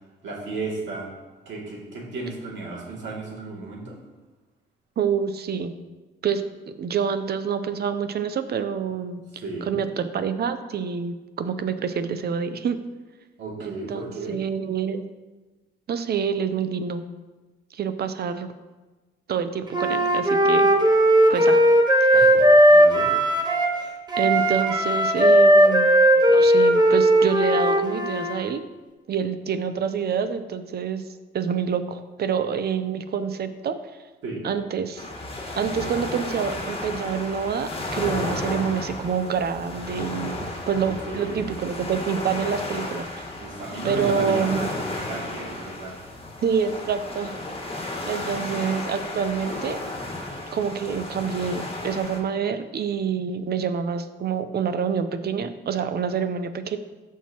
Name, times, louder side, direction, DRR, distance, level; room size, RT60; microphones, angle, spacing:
voice 1, 0.2-1.1 1.5-4.0 9.3-9.7 13.4-14.4 22.1-23.1 34.2-34.4 40.8-41.4 43.4-45.9, right 3 dB, 70° right, -4 dB, 2.6 m, -34 dB
voice 2, 5.0-5.7 6.2-12.8 13.6-15.0 15.9-17.0 17.7-18.5 19.3-20.7 21.3-21.7 22.1-22.3 24.2-28.6 29.1-31.0 31.3-33.8 34.4-35.1 35.6-43.2 43.8-44.7 46.4-47.3 47.8-49.8 50.5-56.8, right 7 dB, 55° right, 11 dB, 0.7 m, -27 dB
Wind instrument woodwind instrument, 19.7-23.8 24.1-28.3, equal, 20° right, 1.1 m, -17 dB
sound 1, 35.0-52.2, left 2 dB, 30° left, 1.6 m, -33 dB
14.0 x 4.7 x 3.0 m, 1.2 s
cardioid pair, 90°, 20 cm